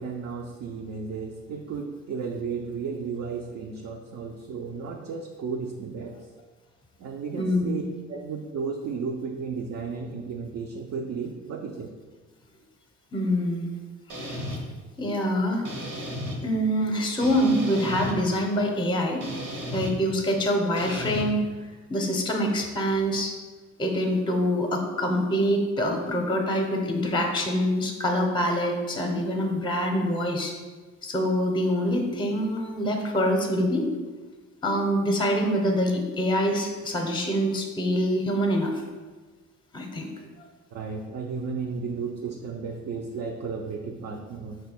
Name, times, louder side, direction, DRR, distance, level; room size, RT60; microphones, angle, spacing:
voice 1, 0.0-6.1 7.0-7.8 8.1-11.9 40.7-44.6, right 5 dB, 60° right, 1 dB, 0.5 m, -34 dB
voice 2, 7.4-7.8 13.1-13.8 14.2-14.6 15.0-15.7 16.4-19.2 19.7-21.5 21.9-23.3 23.8-30.5 31.0-33.9 34.6-38.8 39.7-40.1, equal, 15° left, 3 dB, 0.6 m, -25 dB
sound 1, 14.1-14.6 15.6-16.4 17.2-18.1 19.2-19.9 20.8-21.2, equal, 85° right, 1.0 m, -34 dB
4.5 x 2.2 x 4.3 m, 1.3 s
cardioid pair, 90°, 30 cm